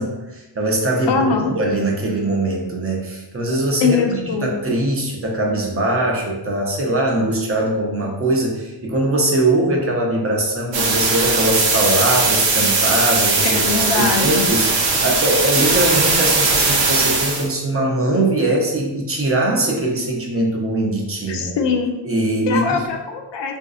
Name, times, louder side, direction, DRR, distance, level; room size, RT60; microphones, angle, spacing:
voice 1, 0.0-21.5 22.0-22.8, right 1 dB, 30° right, -1 dB, 0.6 m, -21 dB
voice 2, 1.1-1.5 3.8-4.6 13.4-14.5 21.3-21.9 22.5-23.6, left 5 dB, 70° left, 3 dB, 0.6 m, -21 dB
sound 1, 10.7-17.5, right 3 dB, 75° right, 0.8 m, -18 dB
3.7 x 2.6 x 2.4 m, 1.0 s
cardioid pair, 110°, 45 cm